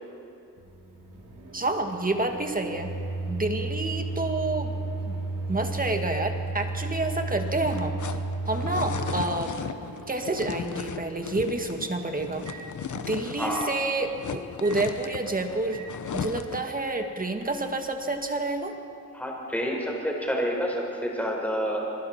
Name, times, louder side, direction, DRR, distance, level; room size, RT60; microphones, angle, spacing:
Microwave oven, 0.6-13.1 13.5-13.7 14.6-14.8 15.7-15.9 16.8-17.0, right 2 dB, 90° right, 3.5 m, -34 dB
voice 1, 1.5-2.9 3.3-4.7 5.1-5.2 5.5-8.2 8.5-9.5 10.1-12.7 12.9-15.8 16.1-18.7, right 2 dB, 25° right, 4 dB, 2.0 m, -29 dB
sound 1, 7.4-13.7 14.0-16.7, left 7 dB, 70° left, 1.0 m, -37 dB
voice 2, 13.4-13.7 19.1-21.8, equal, 5° left, -2 dB, 4.7 m, -28 dB
27.0 x 22.0 x 4.5 m, 2.7 s
wide cardioid pair, 95°, 32 cm